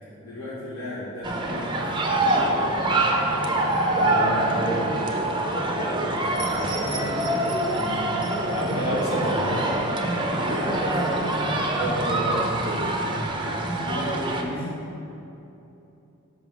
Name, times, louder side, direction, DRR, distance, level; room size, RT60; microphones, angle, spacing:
voice 1, 0.2-2.6 6.8-7.4 9.4-9.8 10.3-11.4 13.8-14.8, left 1 dB, 85° left, -8 dB, 1.3 m, -35 dB
sound 1, 1.2-14.4, right 1 dB, 20° right, 0.6 m, -25 dB
voice 2, 3.9-4.8 7.8-8.0 8.5-9.5 11.7-12.8, right 1 dB, 65° left, -5 dB, 1.8 m, -29 dB
5.8 x 5.4 x 6.1 m, 2.9 s
head